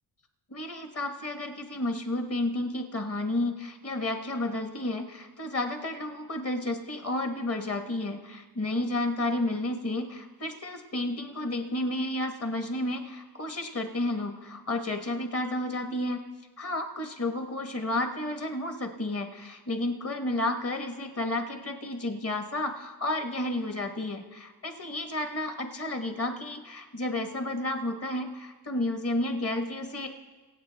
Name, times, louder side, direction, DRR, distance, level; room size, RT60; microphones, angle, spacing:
voice 1, 0.5-16.2 16.6-30.1, left 1 dB, 30° left, 5 dB, 1.3 m, -31 dB
24.5 x 8.1 x 3.5 m, 1.3 s
cardioid pair, 125°, 44 cm